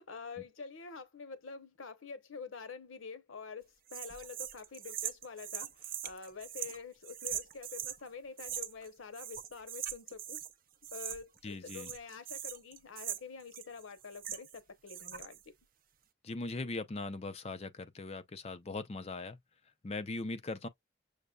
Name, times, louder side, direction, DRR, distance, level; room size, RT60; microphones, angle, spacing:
voice 1, 0.0-10.4 10.9-15.5, left 5 dB, 90° left, 0.9 m, -47 dB
sound 1, 3.9-8.0 8.4-8.9 9.1-10.5 10.8-11.4 11.6-14.6 14.9-15.4, right 10 dB, 45° right, 0.5 m, -41 dB
voice 2, 11.4-11.9 16.2-19.4 19.8-20.7, left 2 dB, 30° left, 0.5 m, -40 dB
6.4 x 2.2 x 2.3 m
head